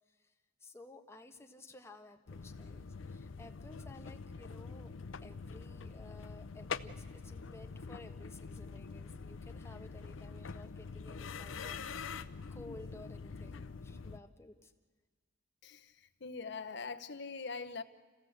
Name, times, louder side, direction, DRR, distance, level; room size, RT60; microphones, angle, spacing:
voice 1, 0.6-4.9 5.2-14.7, left 2 dB, 15° left, 4 dB, 1.4 m, -55 dB
sound 1, 2.3-14.2, left 5 dB, 80° left, 0.7 m, -45 dB
voice 2, 15.6-17.8, left 4 dB, 60° left, 10 dB, 1.1 m, -43 dB
27.5 x 16.0 x 8.0 m, 1.4 s
head